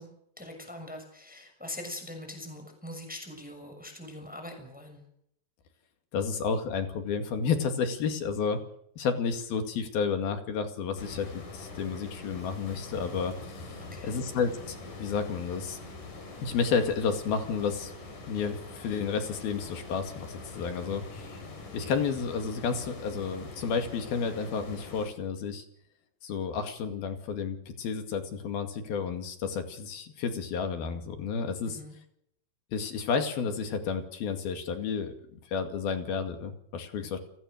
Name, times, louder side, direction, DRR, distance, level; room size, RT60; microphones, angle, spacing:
voice 1, 0.0-5.0 13.8-14.2 31.6-32.0 37.0-37.1, left 1 dB, ahead, 5 dB, 6.2 m, -43 dB
voice 2, 6.1-8.6 9.0-13.8 14.0-15.8 16.4-17.9 18.3-21.4 21.7-25.6 26.2-31.8 32.7-37.2, left 5 dB, 65° left, 7 dB, 4.1 m, -31 dB
sound 1, 11.0-25.1, left 3 dB, 50° left, 6.3 m, -44 dB
30.0 x 19.5 x 6.7 m, 0.73 s
omnidirectional pair, 4.8 m